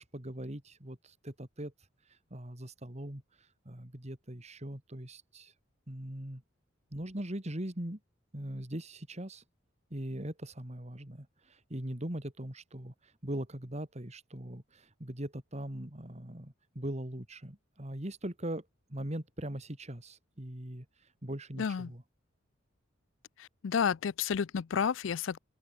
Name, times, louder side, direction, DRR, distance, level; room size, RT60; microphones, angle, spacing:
voice 1, 0.0-1.7 2.3-3.2 3.6-5.5 5.9-6.4 6.9-8.0 8.3-9.4 9.9-20.9 21.2-22.0, right 1 dB, 35° right, 2.8 m, -40 dB
voice 2, 21.6-21.9 23.4-25.4, left 7 dB, 75° left, 0.4 m, -31 dB
open air
head